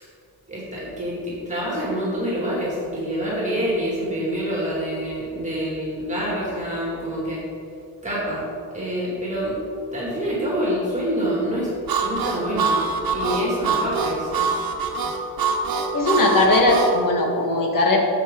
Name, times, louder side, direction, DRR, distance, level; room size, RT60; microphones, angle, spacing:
voice 1, 0.5-7.4 8.0-8.4 8.7-9.6 9.9-11.7 12.0-12.8 13.1-14.5, equal, 20° right, -6 dB, 2.2 m, -26 dB
Harmonica, 11.9-17.0, right 5 dB, 65° right, 1.0 m, -24 dB
voice 2, 15.9-18.0, left 2 dB, 55° left, 0 dB, 1.6 m, -19 dB
10.5 x 7.0 x 3.8 m, 2.5 s
wide cardioid pair, 145°, 38 cm